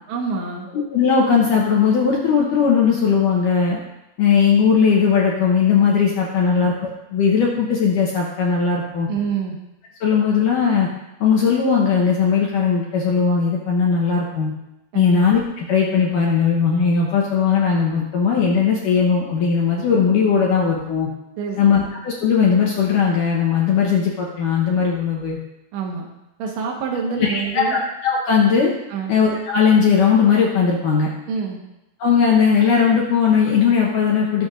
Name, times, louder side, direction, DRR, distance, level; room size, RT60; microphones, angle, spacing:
voice 1, 0.1-0.7 6.5-6.8 9.1-9.6 14.9-15.2 21.4-21.9 25.7-26.1 26.4-27.8 28.9-29.2 31.3-31.6, right 5 dB, 85° right, 0 dB, 3.8 m, -27 dB
voice 2, 0.9-3.8 4.2-6.7 7.1-9.1 10.0-10.9 11.2-14.5 14.9-21.1 21.6-25.4 27.1-28.7 29.1-31.1 32.0-34.5, left 6 dB, 75° left, -2 dB, 2.0 m, -18 dB
20.5 x 7.1 x 2.6 m, 0.91 s
omnidirectional pair, 5.1 m